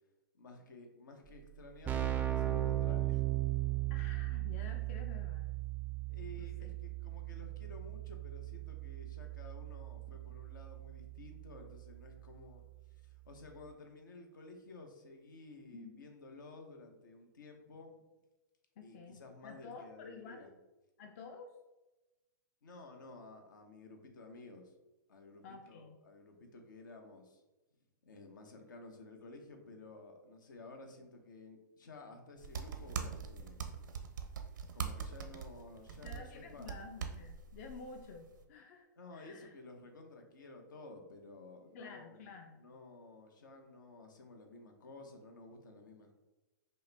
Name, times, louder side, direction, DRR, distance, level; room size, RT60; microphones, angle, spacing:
voice 1, 0.3-3.2 6.1-12.6 12.9-17.9 18.8-20.5 22.6-24.7 25.1-27.4 28.0-33.6 34.7-36.7 39.0-46.1, left 2 dB, 80° left, 4 dB, 0.8 m, -53 dB
Keyboard (musical), 1.3-1.4 1.6-12.2, right 15 dB, 15° right, 0.3 m, -37 dB
voice 2, 3.9-5.5 6.4-6.7 15.7-16.0 18.8-20.5 21.0-21.6 25.4-26.0 36.0-39.5 41.7-42.6, left 4 dB, 50° left, 4 dB, 0.5 m, -51 dB
sound 1, 32.4-38.4, right 6 dB, 80° right, 0.6 m, -43 dB
5.3 x 2.1 x 3.3 m, 1.0 s
hypercardioid pair, 130°, 10 cm